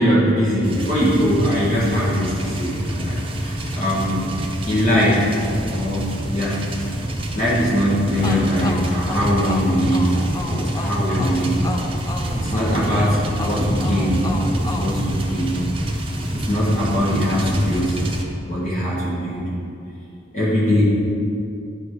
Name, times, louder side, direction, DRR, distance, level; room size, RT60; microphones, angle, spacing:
voice 1, 0.0-4.2 4.7-5.3 5.7-6.6 7.3-10.2 10.4-11.6 12.3-15.5 16.3-18.0 18.4-19.5 20.3-20.8, equal, 40° left, -9 dB, 1.8 m, -21 dB
sound 1, 0.6-18.2, right 1 dB, 30° right, 0.8 m, -26 dB
sound 2, 6.8-16.7, equal, 75° left, 1.0 m, -36 dB
sound 3, 8.2-15.8, left 2 dB, 20° left, 0.5 m, -32 dB
11.0 x 4.2 x 4.9 m, 2.6 s
head